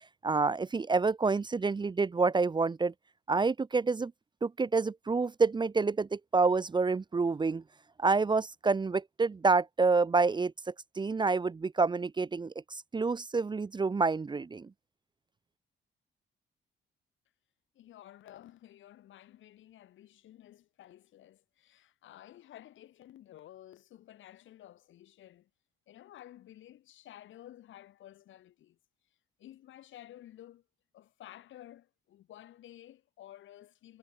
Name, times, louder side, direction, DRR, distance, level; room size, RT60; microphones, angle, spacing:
voice 1, 0.2-2.9 3.3-4.1 4.4-7.6 8.0-10.5 11.0-14.7, right 4 dB, 20° right, 0.6 m, -28 dB
voice 2, 17.7-25.5 25.9-28.8 29.4-30.6 30.9-34.0, left 13 dB, 75° left, 2.7 m, -53 dB
cardioid pair, 90°, 20 cm